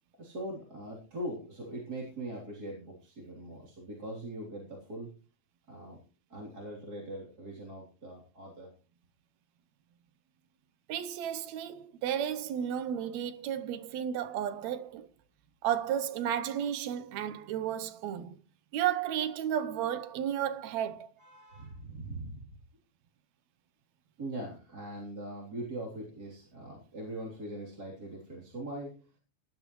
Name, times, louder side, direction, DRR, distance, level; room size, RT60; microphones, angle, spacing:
voice 1, 0.2-5.1 5.7-6.0 6.3-8.7 21.2-22.5 24.2-29.0, right 1 dB, 30° right, 3.7 m, -41 dB
voice 2, 10.9-15.1 15.6-18.4 18.7-21.1, right 10 dB, 75° right, 2.1 m, -33 dB
18.5 x 12.0 x 3.1 m
omnidirectional pair, 3.3 m